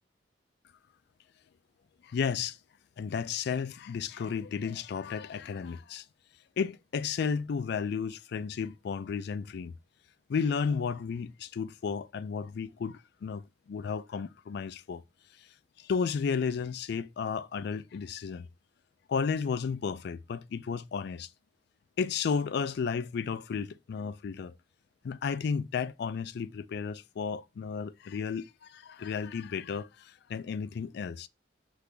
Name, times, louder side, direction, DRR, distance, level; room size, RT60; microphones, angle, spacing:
voice 1, 2.0-2.6 3.0-6.0 6.6-9.7 10.3-13.4 13.7-15.0 15.8-18.5 19.1-21.3 22.0-24.5 25.0-31.3, left 6 dB, 65° left, 0.3 m, -33 dB
6.0 x 2.5 x 3.4 m
head